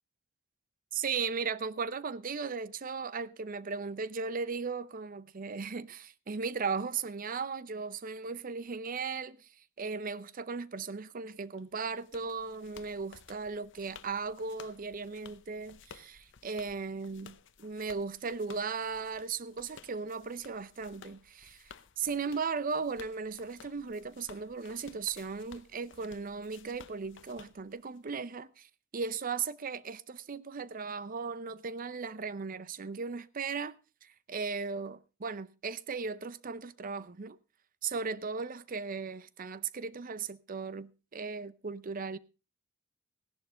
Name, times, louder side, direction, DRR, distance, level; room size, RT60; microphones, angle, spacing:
voice 1, 0.9-9.5 9.8-28.7 28.9-33.8 34.0-37.4 37.8-42.2, right 5 dB, 45° right, 0.6 m, -37 dB
sound 1, 11.6-28.1, left 6 dB, 65° left, 0.8 m, -56 dB
16.0 x 11.0 x 3.7 m
head